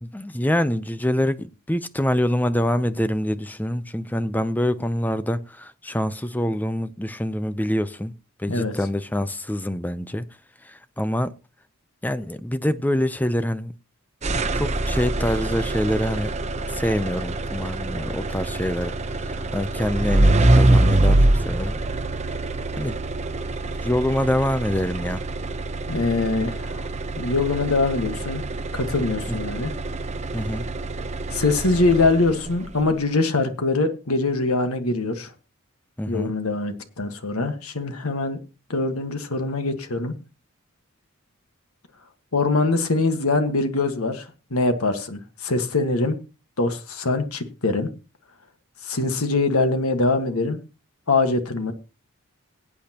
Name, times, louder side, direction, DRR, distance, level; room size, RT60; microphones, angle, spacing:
voice 1, 0.0-10.3 10.6-11.3 12.0-13.7 14.5-16.3 16.7-18.9 19.2-21.7 22.8-23.0 23.8-25.3 29.3-29.4 30.3-30.7 36.0-36.3, left 1 dB, 10° left, 0.6 m, -25 dB
sound 1, 14.2-32.5, right 2 dB, 30° right, 0.8 m, -24 dB
voice 2, 25.9-26.9 27.1-28.4 28.7-29.7 31.3-35.3 36.1-38.4 38.7-40.1 42.3-46.2 46.6-47.9 48.8-50.6 51.1-51.7, left 3 dB, 85° left, 1.6 m, -23 dB
22.5 x 8.6 x 2.9 m
head